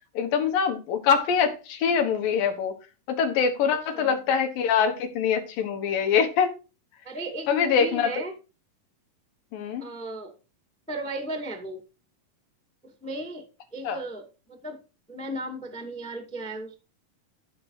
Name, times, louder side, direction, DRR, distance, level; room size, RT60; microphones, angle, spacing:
voice 1, 0.1-2.7 3.1-6.5 7.5-8.1 9.5-9.9 13.8-14.0, left 7 dB, 75° left, 3.1 m, -24 dB
voice 2, 7.0-8.3 9.8-10.3 10.9-11.8 12.8-13.4 13.7-14.8 15.1-16.8, right 1 dB, 5° left, 1.3 m, -35 dB
12.5 x 6.1 x 4.8 m
omnidirectional pair, 4.0 m